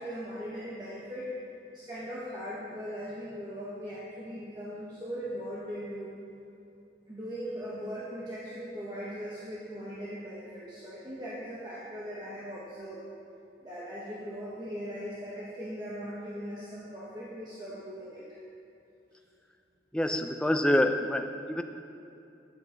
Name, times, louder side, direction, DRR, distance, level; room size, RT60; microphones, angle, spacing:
voice 1, 0.0-1.3 1.7-6.1 7.1-13.0 13.6-18.2, equal, 20° right, -7 dB, 1.1 m, -39 dB
voice 2, 19.9-21.6, left 1 dB, 5° left, 6 dB, 0.3 m, -26 dB
11.5 x 8.0 x 3.9 m, 2.7 s
head